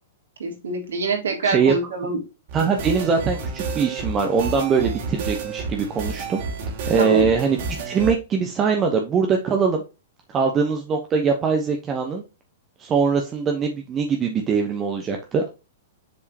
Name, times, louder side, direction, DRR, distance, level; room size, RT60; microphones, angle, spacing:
voice 1, 0.4-2.2 7.0-7.3, right 4 dB, 90° right, -1 dB, 3.7 m, -25 dB
voice 2, 1.4-1.7 2.5-6.4 6.9-9.8 10.3-12.2 12.8-15.5, right 5 dB, 25° right, 3 dB, 1.0 m, -22 dB
sound 1, 2.5-8.1, right 4 dB, 55° right, 2.5 m, -30 dB
7.2 x 4.7 x 2.8 m, 0.29 s
hypercardioid pair, 135°, 0 cm